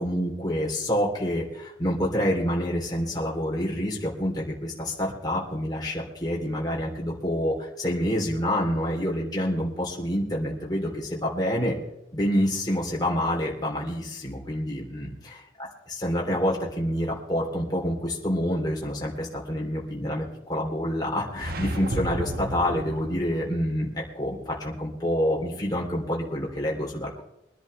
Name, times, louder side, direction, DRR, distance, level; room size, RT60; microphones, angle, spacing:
voice 1, 0.0-11.8 12.1-15.4 15.9-27.2, equal, 20° left, -3 dB, 3.2 m, -27 dB
sound 1, 21.3-23.5, right 1 dB, 50° right, 1.1 m, -32 dB
23.5 x 11.0 x 3.3 m, 0.85 s
head